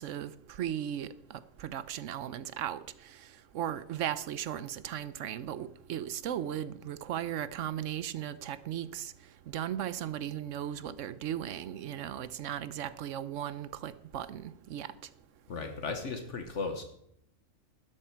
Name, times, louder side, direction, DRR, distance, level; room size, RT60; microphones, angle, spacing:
voice 1, 0.0-3.3 3.5-9.1 9.5-14.9, right 10 dB, 70° right, 1.0 m, -37 dB
voice 2, 15.5-16.8, left 4 dB, 65° left, 1.4 m, -36 dB
12.5 x 11.0 x 4.6 m
omnidirectional pair, 1.4 m